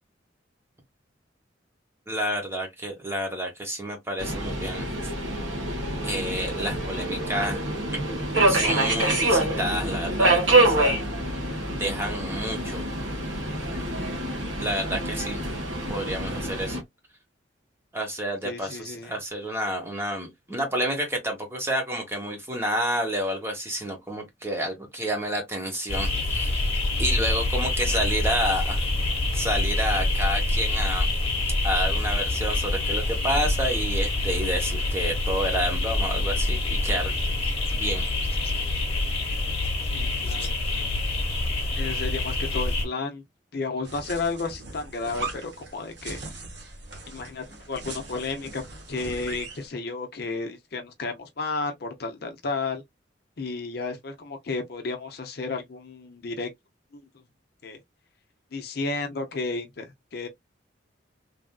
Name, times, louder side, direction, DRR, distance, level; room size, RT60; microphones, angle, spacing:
voice 1, 2.1-5.1 6.0-7.6 7.9-8.1 8.5-11.0 11.7-12.8 14.6-15.4 15.9-16.8 17.9-26.7 27.0-28.8 29.3-31.1 31.6-37.1 37.7-38.0, equal, 15° right, 0.9 m, -29 dB
Subway metro underground, 4.2-16.8, right 2 dB, 90° right, 1.3 m, -26 dB
voice 2, 18.4-19.1 39.9-40.5 41.8-43.2 43.5-46.2 47.1-48.6 48.9-52.8 53.4-56.5 56.9-57.0 57.6-57.8 58.5-60.3, left 3 dB, 55° left, 0.6 m, -32 dB
sound 1, 25.9-42.9, left 2 dB, 30° left, 1.1 m, -26 dB
sound 2, 43.8-49.7, right 2 dB, 60° right, 1.1 m, -39 dB
3.2 x 2.5 x 2.2 m
head